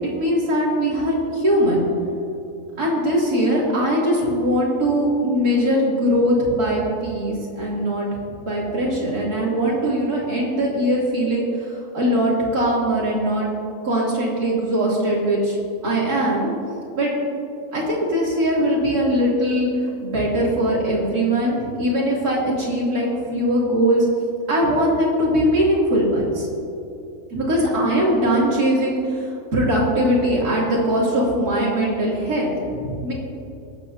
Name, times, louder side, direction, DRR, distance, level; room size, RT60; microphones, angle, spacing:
voice 1, 0.1-1.9 2.8-8.1 8.4-13.5 13.8-15.6 15.8-16.5 16.9-17.1 17.7-24.1 24.5-26.5 27.3-33.1, equal, 85° right, -5 dB, 3.7 m, -21 dB
25.5 x 9.0 x 2.9 m, 2.7 s
omnidirectional pair, 1.6 m